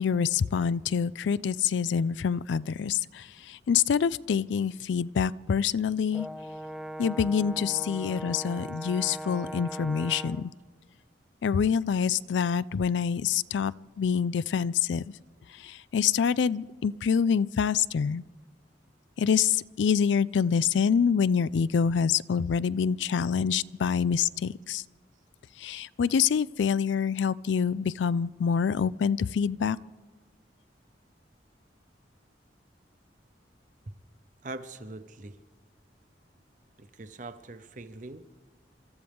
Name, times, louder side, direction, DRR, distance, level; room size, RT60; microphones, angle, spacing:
voice 1, 0.0-6.3 7.0-10.5 11.4-15.1 15.6-18.2 19.2-24.8 25.6-29.8, left 7 dB, 85° left, 0.4 m, -26 dB
Brass instrument, 6.1-10.5, equal, ahead, 0.4 m, -39 dB
voice 2, 34.4-35.4 36.8-38.3, right 2 dB, 45° right, 0.8 m, -42 dB
28.5 x 13.5 x 3.5 m
head